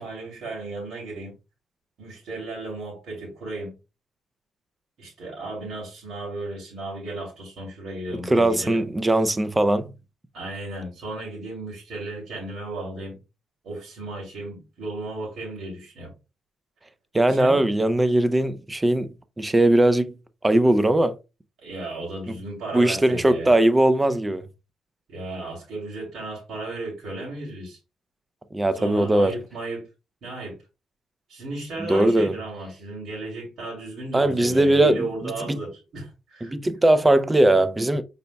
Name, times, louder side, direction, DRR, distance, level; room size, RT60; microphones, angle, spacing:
voice 1, 0.0-1.3 2.0-3.7 5.0-8.9 10.3-13.2 13.6-16.1 17.3-17.6 21.6-23.6 25.1-27.8 28.7-29.9 30.2-30.6 31.3-36.5, right 2 dB, 65° right, 2.7 m, -35 dB
voice 2, 8.3-9.9 17.1-19.1 19.4-20.1 20.4-21.1 22.7-24.4 28.5-29.3 31.8-32.3 34.1-35.1 35.5-35.6 36.4-38.0, right 1 dB, 15° right, 0.5 m, -19 dB
5.5 x 4.1 x 2.2 m
cardioid pair, 90°, 0 cm